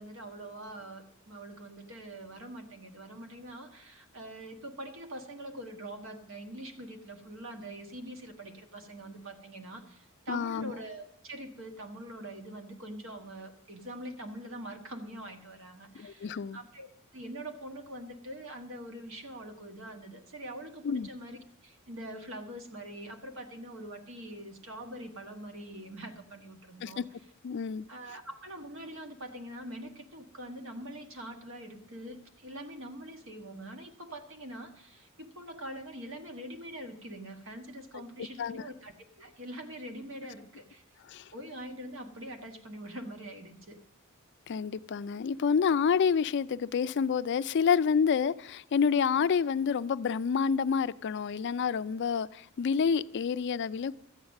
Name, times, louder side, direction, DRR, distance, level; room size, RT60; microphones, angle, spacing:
voice 1, 0.0-27.0 27.9-40.8 41.3-43.8, right 1 dB, 65° right, 5 dB, 1.4 m, -44 dB
voice 2, 10.3-10.7 15.9-16.6 20.8-21.1 26.8-27.0 27.4-27.9 38.4-38.6 41.1-41.2 44.5-53.9, left 6 dB, 55° left, 15 dB, 0.4 m, -28 dB
13.0 x 8.8 x 6.4 m, 0.79 s
head